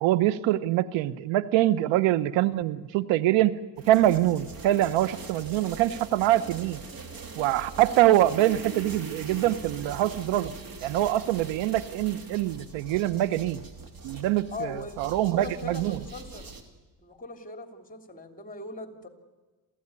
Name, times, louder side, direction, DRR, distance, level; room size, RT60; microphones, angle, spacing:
voice 1, 0.0-3.6 3.9-6.8 7.4-10.5 10.8-13.6 14.0-16.0, right 14 dB, 85° right, 16 dB, 1.0 m, -24 dB
sound 1, 3.8-16.6, right 3 dB, 50° right, 3.1 m, -42 dB
voice 2, 14.5-16.5 17.0-19.1, left 3 dB, 20° left, 6 dB, 3.3 m, -40 dB
28.0 x 15.0 x 9.8 m, 1.3 s
cardioid pair, 85°, 44 cm